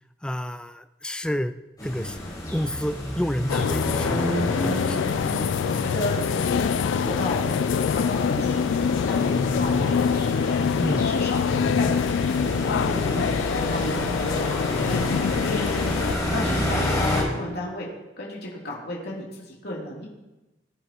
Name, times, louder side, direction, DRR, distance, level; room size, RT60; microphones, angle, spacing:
voice 1, 0.2-1.5 1.8-2.2 2.5-4.2 4.6-5.0 10.8-11.0, equal, 5° left, 10 dB, 0.4 m, -29 dB
sound 1, 1.8-17.2, left 1 dB, 20° left, 5.2 m, -29 dB
sound 2, 3.5-16.2, left 7 dB, 85° left, 0.3 m, -25 dB
voice 2, 5.6-9.9 10.4-11.4 11.7-13.9 14.4-17.9 18.2-20.1, left 1 dB, 60° left, -5 dB, 3.1 m, -34 dB
20.5 x 10.0 x 3.0 m, 1.0 s
head